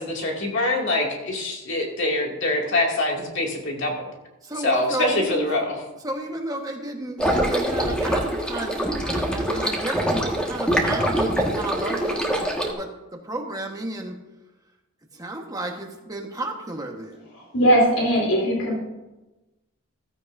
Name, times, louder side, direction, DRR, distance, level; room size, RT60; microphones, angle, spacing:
voice 1, 0.0-4.1 4.6-5.8, left 2 dB, 60° left, -1 dB, 2.5 m, -24 dB
voice 2, 4.4-5.6 6.0-14.1 15.1-17.2, right 1 dB, 15° right, 2 dB, 1.3 m, -33 dB
sound 1, 7.2-12.7, equal, 5° left, 1.7 m, -24 dB
voice 3, 17.3-18.8, equal, 85° left, -3 dB, 3.5 m, -20 dB
15.0 x 14.0 x 2.7 m, 1.0 s
head